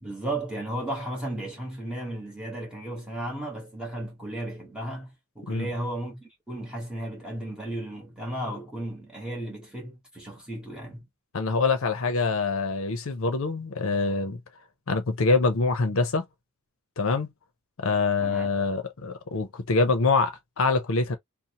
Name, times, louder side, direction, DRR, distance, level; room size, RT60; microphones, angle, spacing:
voice 1, 0.0-11.1 18.2-18.5, right 1 dB, 5° right, 1.1 m, -35 dB
voice 2, 11.3-14.4 14.9-16.2 17.0-17.3 17.8-21.2, left 3 dB, 60° left, 0.6 m, -25 dB
2.7 x 2.0 x 2.8 m
head